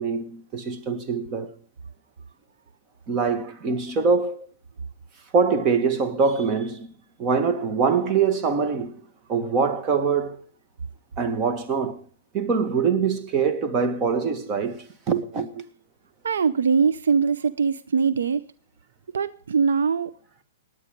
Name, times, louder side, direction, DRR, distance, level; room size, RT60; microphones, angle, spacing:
voice 1, 0.0-1.5 3.1-4.4 5.3-6.9 7.2-9.0 9.3-10.5 11.2-12.0 12.3-15.6, right 5 dB, 30° right, 1.8 m, -24 dB
voice 2, 16.2-18.4 19.1-20.1, right 6 dB, 80° right, 0.6 m, -22 dB
20.0 x 8.7 x 5.2 m
hypercardioid pair, 130°, 0 cm